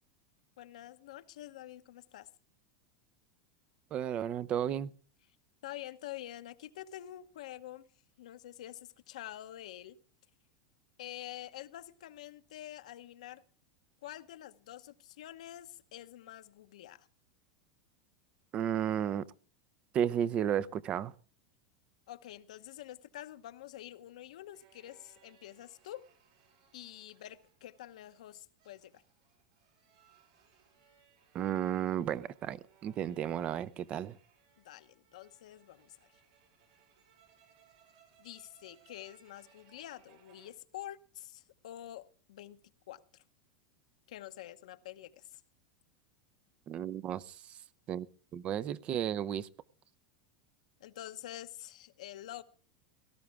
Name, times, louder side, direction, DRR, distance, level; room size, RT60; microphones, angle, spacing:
voice 1, 0.6-2.3 5.6-7.9 8.2-10.0 11.0-13.4 14.0-17.1 22.1-26.0 26.7-29.0 34.6-36.1 38.2-42.6 42.9-43.2 44.1-45.4 50.8-52.4, left 13 dB, 80° left, 10 dB, 1.0 m, -47 dB
voice 2, 3.9-4.9 18.5-19.2 19.9-21.1 31.3-34.2 46.7-47.3 47.9-48.1 48.3-49.5, right 10 dB, 35° right, 19 dB, 0.6 m, -33 dB
sound 1, 22.8-40.5, right 8 dB, 75° right, 5.0 m, -67 dB
17.5 x 13.0 x 3.6 m, 0.41 s
supercardioid pair, 140°, 4 cm